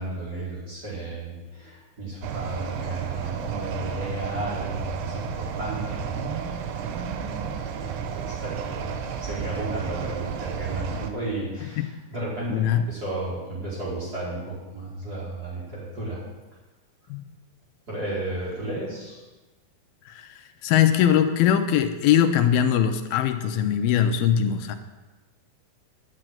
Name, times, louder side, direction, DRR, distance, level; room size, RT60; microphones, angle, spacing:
voice 1, 0.0-16.2 17.9-19.2, right 2 dB, 25° right, -8 dB, 5.2 m, -33 dB
sound 1, 2.2-11.1, right 7 dB, 80° right, 2.5 m, -32 dB
voice 2, 12.5-12.8 17.1-17.2 20.2-20.3 20.6-24.8, left 9 dB, 90° left, 7 dB, 2.7 m, -21 dB
11.0 x 7.9 x 9.1 m, 1.2 s
omnidirectional pair, 4.3 m